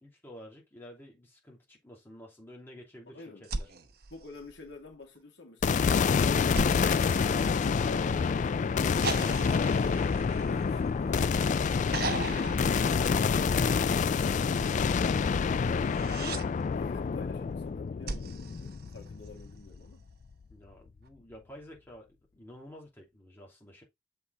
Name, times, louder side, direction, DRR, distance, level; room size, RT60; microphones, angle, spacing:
voice 1, 0.0-3.7 20.5-22.1 22.3-23.8, equal, 10° left, 2.8 m, -50 dB
voice 2, 3.1-3.5 4.1-7.3 7.6-10.1 10.4-11.3 16.7-20.0, left 3 dB, 60° left, 2.3 m, -49 dB
sound 1, 3.4-5.0 6.5-8.2 9.0-11.3 11.9-13.7 15.7-16.5 18.1-19.5 21.1-21.2, right 4 dB, 55° right, 0.9 m, -39 dB
sound 2, 5.6-19.9, left 5 dB, 40° left, 0.3 m, -27 dB
6.9 x 4.5 x 3.9 m
head